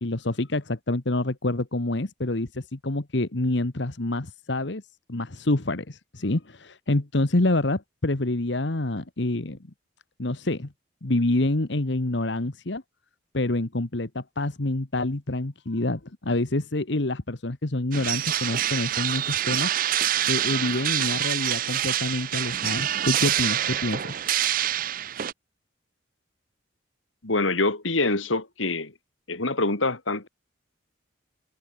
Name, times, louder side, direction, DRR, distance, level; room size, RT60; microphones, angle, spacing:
voice 1, 0.0-4.8 5.1-9.6 10.2-10.7 11.0-12.8 13.3-19.7 20.3-24.1, left 2 dB, 65° left, 1.4 m, -27 dB
metal clangs, 17.9-25.3, right 11 dB, 45° right, 0.5 m, -26 dB
voice 2, 27.2-28.9 29.3-30.3, left 2 dB, 85° left, 3.3 m, -25 dB
head